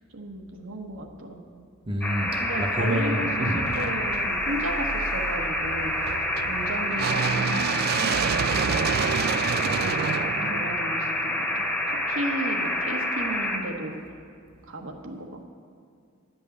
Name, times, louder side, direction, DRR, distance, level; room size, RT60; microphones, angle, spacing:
voice 1, 0.1-1.4 2.4-6.0 6.5-9.0 9.3-14.0 14.7-15.5, right 1 dB, 85° right, 2 dB, 1.2 m, -35 dB
voice 2, 1.9-3.6, equal, 25° right, 2 dB, 0.8 m, -28 dB
sound 1, 2.0-13.6, left 1 dB, 10° left, 1.1 m, -28 dB
sound 2, 3.6-11.6, right 7 dB, 50° right, 0.3 m, -29 dB
10.5 x 5.4 x 8.4 m, 2.3 s
head